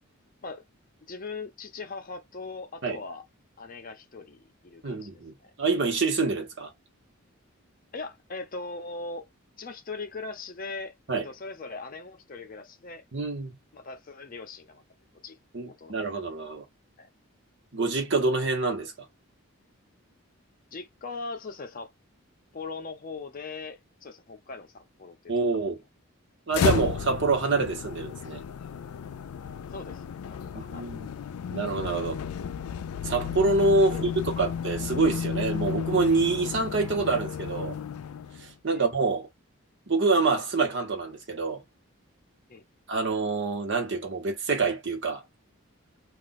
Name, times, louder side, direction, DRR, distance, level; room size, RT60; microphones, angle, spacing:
voice 1, 1.1-3.2 3.6-5.1 5.4-5.5 7.9-9.3 9.6-10.9 11.2-13.0 13.7-14.8 15.2-15.4 15.6-16.0 17.0-17.1 20.7-21.9 22.5-25.6 29.7-30.2 30.5-30.9 33.9-34.0 34.4-34.5 38.7-38.8 42.5-42.6, left 3 dB, 40° left, 0.5 m, -40 dB
voice 2, 4.8-6.7 11.1-11.3 13.1-13.6 15.5-16.7 17.7-18.9 25.3-25.8 26.5-28.4 30.5-31.1 31.5-32.2 33.0-34.1 34.4-37.8 38.4-39.3 39.9-41.6 42.9-45.2, right 3 dB, 55° right, 1.0 m, -26 dB
sound 1, 26.5-38.5, left 7 dB, 90° left, 0.4 m, -33 dB
2.5 x 2.2 x 3.9 m
head